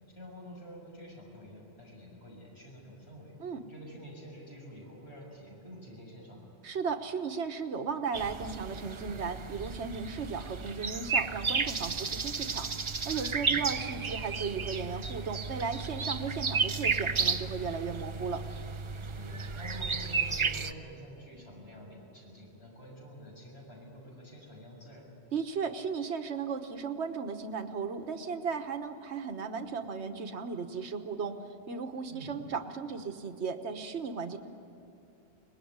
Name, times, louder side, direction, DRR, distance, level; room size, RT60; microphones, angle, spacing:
voice 1, 0.2-3.4 3.6-6.5 13.5-13.8 19.1-25.1 32.1-32.4, equal, 70° left, -1 dB, 6.9 m, -48 dB
voice 2, 6.6-12.7 13.0-18.4 25.3-34.4, right 5 dB, 75° right, 7 dB, 1.5 m, -35 dB
sound 1, 8.1-20.7, right 5 dB, 30° right, 0.6 m, -33 dB
24.0 x 20.5 x 9.6 m, 2.8 s
omnidirectional pair, 1.1 m